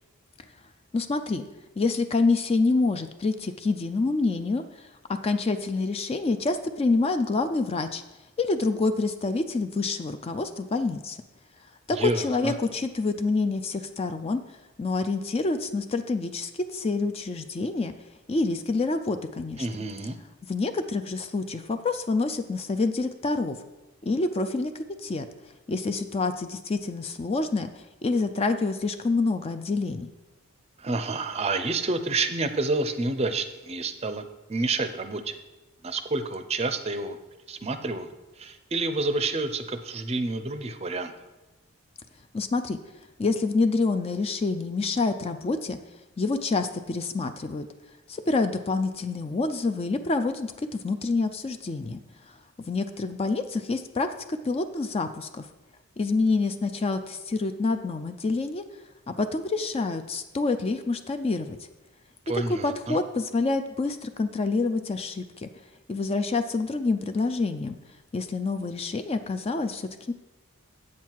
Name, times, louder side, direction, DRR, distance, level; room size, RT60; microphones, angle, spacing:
voice 1, 0.9-1.5 1.8-8.0 8.4-11.2 11.9-17.9 18.3-19.7 20.5-23.6 24.0-25.3 25.7-30.1 42.3-42.8 43.2-45.8 46.2-47.7 48.1-52.0 52.7-55.5 56.0-58.6 59.1-61.6 62.3-65.5 65.9-67.8 68.1-70.1, left 3 dB, 25° left, 9 dB, 0.3 m, -27 dB
voice 2, 11.9-12.5 19.6-20.2 30.8-34.2 34.5-35.4 35.8-37.2 37.5-41.1 62.3-63.0, right 3 dB, 30° right, 9 dB, 0.5 m, -29 dB
8.3 x 7.4 x 4.6 m, 1.1 s
head